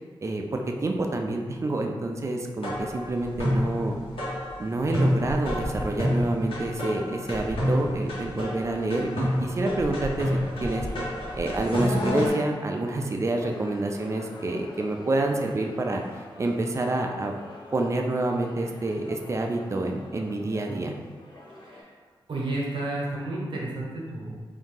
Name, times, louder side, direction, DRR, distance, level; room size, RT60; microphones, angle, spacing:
voice 1, 0.2-4.0 4.6-10.9 11.3-16.0 16.4-17.3 17.7-20.9, right 2 dB, 30° right, 3 dB, 0.4 m, -28 dB
sound 1, 2.6-12.3, equal, 80° left, 1.4 m, -28 dB
sound 2, 8.7-21.8, left 1 dB, 55° left, 1.0 m, -47 dB
voice 2, 22.3-24.4, right 2 dB, 65° right, -3 dB, 0.9 m, -31 dB
3.5 x 2.7 x 3.8 m, 1.4 s
wide cardioid pair, 130°, 9 cm